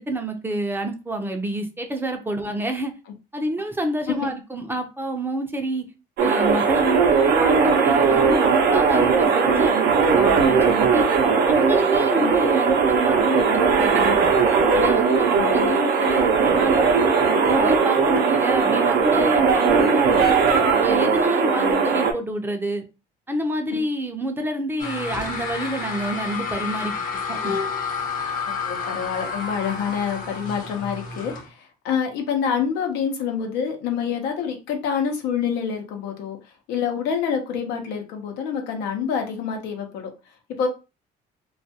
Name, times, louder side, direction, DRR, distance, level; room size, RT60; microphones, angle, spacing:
voice 1, 0.0-2.9 3.3-5.9 6.2-11.1 11.4-14.3 14.7-16.9 17.3-20.4 20.8-22.8 23.3-27.0 27.3-27.6, right 1 dB, 15° right, 0.5 m, -27 dB
sound 1, 6.2-22.1, right 5 dB, 70° right, 0.6 m, -19 dB
voice 2, 15.3-15.8 28.5-36.4 36.7-40.1 40.6-40.7, left 7 dB, 90° left, 0.7 m, -27 dB
sound 2, 24.8-31.5, left 5 dB, 55° left, 0.7 m, -30 dB
2.3 x 2.2 x 2.7 m
cardioid pair, 110°, 17 cm